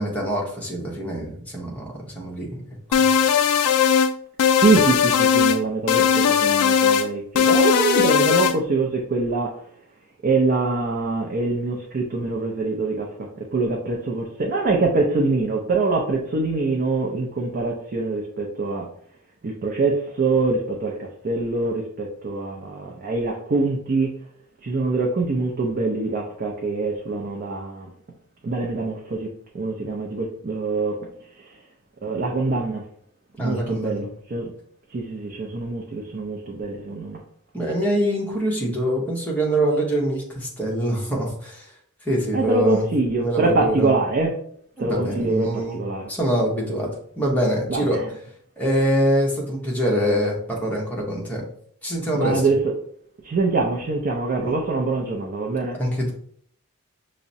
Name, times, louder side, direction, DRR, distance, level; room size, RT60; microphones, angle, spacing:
voice 1, 0.0-2.6 2.9-3.1 33.4-34.0 36.9-37.0 37.5-41.7 42.0-42.9 43.2-43.9 44.8-45.8 46.1-46.9 47.2-48.0 48.6-51.4 51.8-52.4 54.4-54.5 55.7-56.1, equal, 5° left, -3 dB, 0.8 m, -24 dB
sound 1, 2.9-4.1 4.4-5.6 5.9-7.1 7.4-8.6, left 7 dB, 90° left, 0.3 m, -18 dB
voice 2, 4.6-9.6 10.2-18.9 19.4-24.2 24.6-27.9 28.4-29.3 29.5-31.0 32.0-32.8 33.4-34.5 34.9-37.2 42.3-44.4 44.8-45.5 45.7-46.0 47.7-48.0 52.1-52.5 53.2-55.8, right 3 dB, 40° right, 0 dB, 0.4 m, -24 dB
5.6 x 2.0 x 2.6 m, 0.63 s
head